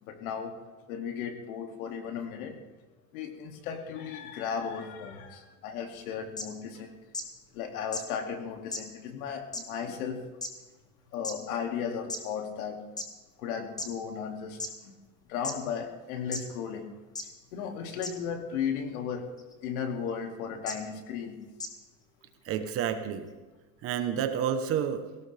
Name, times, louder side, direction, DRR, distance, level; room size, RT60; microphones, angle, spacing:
voice 1, 0.0-0.5 0.9-2.6 3.1-6.9 7.5-10.2 11.1-13.0 13.4-14.9 15.3-16.9 17.5-19.3 19.6-21.4, left 7 dB, 80° left, 4 dB, 2.6 m, -35 dB
sound 1, 6.4-6.5 7.1-7.2 7.9-8.0 8.7-8.8 9.5-9.6 10.4-10.5 11.2-11.3 12.1-12.2 13.0-13.1 13.8-13.9 14.6-14.7 15.4-15.5 16.3-16.4 17.1-17.2 18.0-18.1 19.4-19.5 20.7-20.8 21.6-21.7, left 2 dB, 10° left, 1.1 m, -34 dB
voice 2, 22.4-23.3 23.8-25.1, right 8 dB, 30° right, 9 dB, 1.0 m, -29 dB
18.0 x 17.0 x 3.5 m, 1.2 s
supercardioid pair, 170°, 43 cm